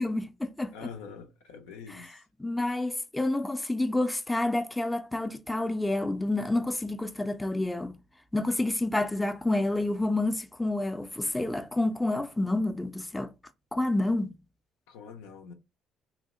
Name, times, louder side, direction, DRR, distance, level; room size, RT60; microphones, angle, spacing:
voice 1, 0.0-0.7 1.9-8.0 8.3-13.3 13.7-14.4, left 2 dB, 10° left, 0.4 m, -29 dB
voice 2, 0.7-2.2 14.9-15.5, left 6 dB, 90° left, 0.5 m, -45 dB
2.8 x 2.1 x 3.6 m
supercardioid pair, 70°, 0 cm